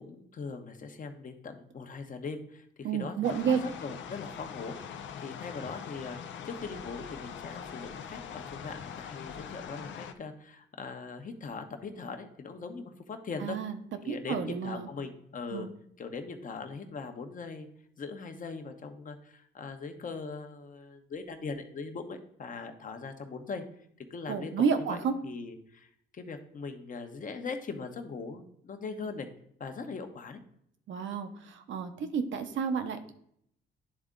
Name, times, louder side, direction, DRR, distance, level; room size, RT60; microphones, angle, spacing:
voice 1, 0.0-13.6 14.0-15.7 16.0-17.7 18.0-23.6 24.0-24.5 24.8-29.3 29.6-30.4, left 4 dB, 40° left, 6 dB, 1.0 m, -40 dB
voice 2, 2.8-3.6 13.4-13.8 14.1-14.9 15.5-15.7 24.3-25.1 30.9-33.1, right 6 dB, 70° right, 7 dB, 0.9 m, -30 dB
sound 1, 3.2-10.1, left 7 dB, 70° left, 0.7 m, -43 dB
11.0 x 3.6 x 3.8 m, 0.70 s
cardioid pair, 90°, 20 cm